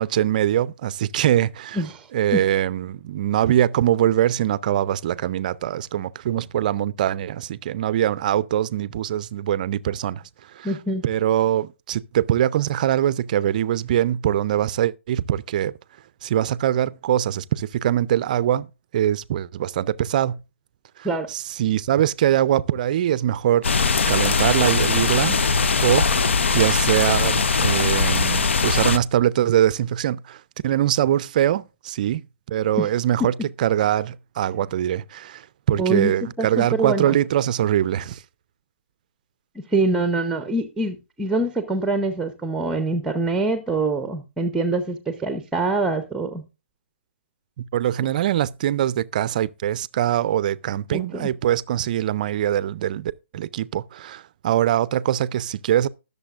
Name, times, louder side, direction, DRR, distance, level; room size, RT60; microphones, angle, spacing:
voice 1, 0.0-1.8 2.1-10.2 10.5-10.7 11.0-15.7 16.2-18.7 18.9-20.4 21.0-23.7 24.1-25.4 25.8-33.3 33.6-38.2 47.6-55.9, right 11 dB, 40° right, 0.4 m, -22 dB
voice 2, 1.7-2.4 10.6-11.0 21.0-21.3 32.8-32.9 35.8-37.2 39.7-46.4 50.9-51.3, right 2 dB, 5° right, 0.7 m, -24 dB
sound 1, 23.6-29.0, left 4 dB, 70° left, 0.7 m, -20 dB
20.0 x 6.8 x 2.4 m
hypercardioid pair, 145°, 7 cm